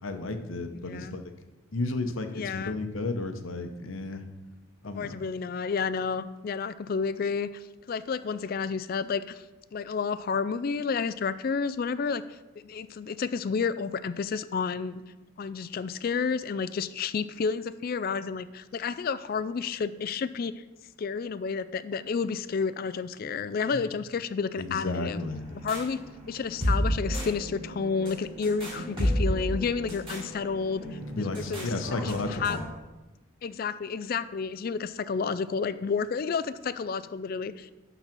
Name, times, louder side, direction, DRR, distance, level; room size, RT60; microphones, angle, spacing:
voice 1, 0.0-1.2 1.7-4.2 4.8-5.1 23.7-23.8 24.6-25.4 31.1-32.6, left 2 dB, 75° left, 7 dB, 0.9 m, -33 dB
voice 2, 0.9-1.2 2.3-2.8 5.0-9.4 9.7-12.4 12.6-15.0 15.4-20.6 21.0-25.2 25.6-26.0 26.3-31.7 32.0-32.6 33.4-37.7, left 5 dB, 45° left, 15 dB, 0.3 m, -31 dB
sound 1, 25.2-32.6, equal, 25° right, 2.9 m, -32 dB
11.5 x 4.1 x 6.0 m, 1.1 s
head